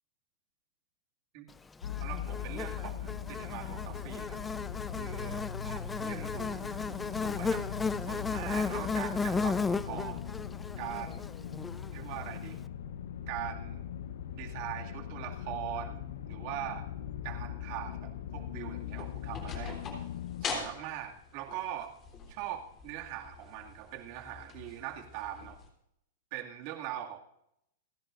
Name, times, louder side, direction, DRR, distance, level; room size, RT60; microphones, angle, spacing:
sound 1, 1.8-20.4, left 9 dB, 80° left, 0.9 m, -40 dB
Buzz, 1.8-12.3, left 4 dB, 10° left, 0.5 m, -35 dB
voice 1, 2.0-4.4 4.9-7.6 8.0-10.2 10.8-11.3 11.9-12.6 13.3-13.8 14.3-16.9 17.2-19.8 20.4-21.9 22.3-25.6 26.3-27.2, right 12 dB, 50° right, 3 dB, 2.2 m, -41 dB
sound 2, 18.8-25.7, left 5 dB, 30° left, 3.3 m, -43 dB
29.0 x 10.5 x 2.6 m, 0.76 s
hypercardioid pair, 140°, 0 cm